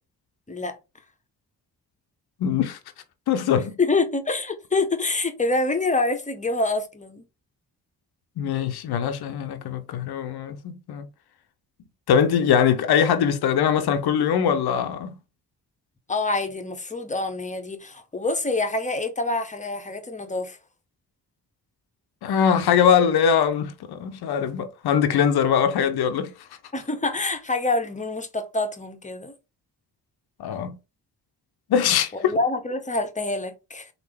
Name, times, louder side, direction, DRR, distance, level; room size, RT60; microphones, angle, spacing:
voice 1, 2.4-2.8 3.3-3.7 8.4-11.1 12.1-15.2 22.2-26.3 30.4-30.8 31.7-32.4, left 8 dB, 65° left, 0.7 m, -22 dB
voice 2, 3.8-7.2 16.1-20.6 26.7-29.3 32.1-33.9, left 3 dB, 15° left, 0.8 m, -26 dB
3.5 x 2.1 x 3.3 m
supercardioid pair, 40°, 42 cm